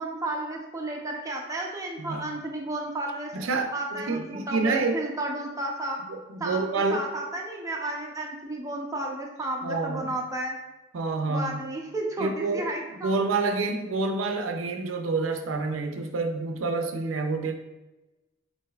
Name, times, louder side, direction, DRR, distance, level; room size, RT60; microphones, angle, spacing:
voice 1, 0.0-3.3 3.7-6.0 6.4-10.6 11.3-13.1, right 2 dB, 15° right, -1 dB, 0.6 m, -32 dB
voice 2, 3.3-5.0 6.1-7.1 9.6-10.2 10.9-11.6 12.2-12.7 13.0-17.6, right 3 dB, 90° right, 5 dB, 0.5 m, -28 dB
6.2 x 2.6 x 2.3 m, 1.1 s
head